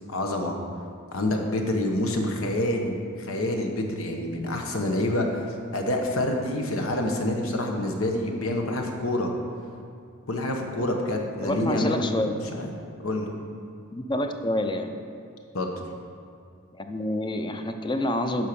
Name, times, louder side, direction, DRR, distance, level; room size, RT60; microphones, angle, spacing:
voice 1, 0.1-0.5 1.1-5.4 5.7-9.3 10.3-12.2 12.5-12.7 13.0-13.3 15.5-15.7, left 1 dB, 80° left, 2 dB, 1.2 m, -27 dB
voice 2, 11.4-12.3 13.9-14.9 16.7-18.5, left 1 dB, 20° left, 6 dB, 0.5 m, -27 dB
11.0 x 4.6 x 6.9 m, 2.3 s
head